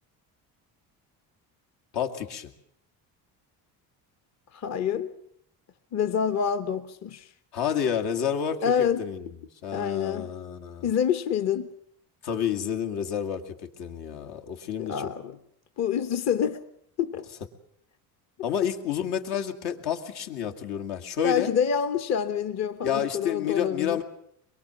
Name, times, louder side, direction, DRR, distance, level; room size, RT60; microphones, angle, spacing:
voice 1, 1.9-2.5 7.5-8.6 9.0-9.4 9.6-10.9 12.2-15.1 18.4-21.5 22.8-24.0, left 8 dB, 75° left, 2.5 m, -29 dB
voice 2, 4.5-5.1 5.9-7.3 8.6-9.0 9.7-10.3 10.8-11.7 14.8-15.4 15.8-16.6 17.0-17.3 21.2-24.0, left 8 dB, 40° left, 0.9 m, -27 dB
23.5 x 22.5 x 7.2 m
cardioid pair, 135°, 39 cm